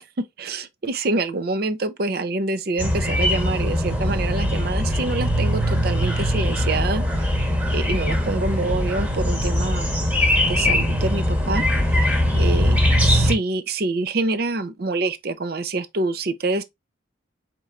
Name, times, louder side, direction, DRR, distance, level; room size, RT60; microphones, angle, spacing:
voice 1, 0.0-9.9 10.4-16.6, right 2 dB, 50° right, 0.5 m, -26 dB
sound 1, 2.8-13.3, equal, 10° right, 1.0 m, -21 dB
4.5 x 4.2 x 2.4 m
head